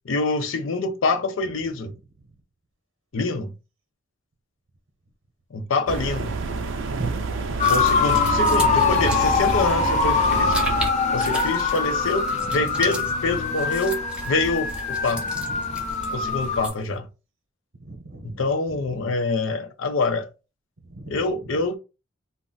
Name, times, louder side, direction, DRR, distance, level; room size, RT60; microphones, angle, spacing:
voice 1, 0.0-1.9 3.1-3.5 5.5-6.4 7.6-10.6 11.1-14.0 14.3-15.2 16.1-17.1 18.2-20.3 21.1-21.8, left 3 dB, 80° left, 0.6 m, -26 dB
sound 1, 5.9-10.9, right 4 dB, 70° right, 0.4 m, -29 dB
voice 2, 6.4-7.6 17.8-18.4 20.9-21.2, right 3 dB, 90° right, 0.8 m, -35 dB
sound 2, 7.5-16.9, right 1 dB, 5° right, 0.6 m, -37 dB
sound 3, 7.6-16.7, left 4 dB, 35° left, 0.5 m, -23 dB
2.4 x 2.1 x 3.9 m
head